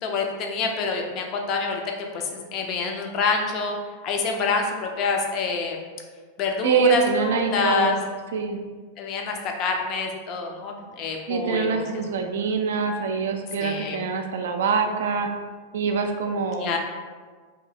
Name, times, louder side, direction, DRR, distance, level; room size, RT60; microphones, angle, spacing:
voice 1, 0.0-1.8 2.1-3.8 4.0-5.8 6.4-8.0 9.0-11.9 13.6-14.0 16.6-16.8, left 4 dB, 35° left, 2 dB, 0.5 m, -26 dB
voice 2, 6.6-8.0 8.3-8.6 11.3-15.3 15.7-16.8, right 5 dB, 60° right, 4 dB, 0.4 m, -24 dB
2.7 x 2.7 x 3.9 m, 1.5 s
figure-of-eight pair, 90°, 0 cm